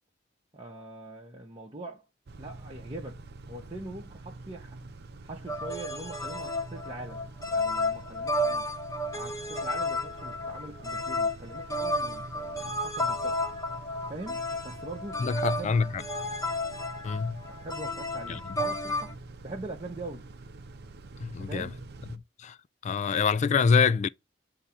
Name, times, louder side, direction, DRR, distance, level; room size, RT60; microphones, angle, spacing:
voice 1, 0.5-2.0 2.4-3.2 3.5-4.8 5.2-8.7 9.1-13.4 14.1-15.3 15.6-15.8 17.5-19.1 19.4-20.3 21.4-21.8, right 2 dB, 30° right, 0.9 m, -42 dB
Car / Idling / Accelerating revving vroom, 2.3-22.2, right 2 dB, 60° right, 0.6 m, -46 dB
sound 1, 5.5-19.1, left 1 dB, 20° left, 1.1 m, -32 dB
voice 2, 15.2-16.0 17.0-17.4 18.3-18.4 21.2-21.7 22.1-22.6 22.8-24.1, left 5 dB, 40° left, 0.3 m, -25 dB
8.4 x 2.9 x 5.6 m
head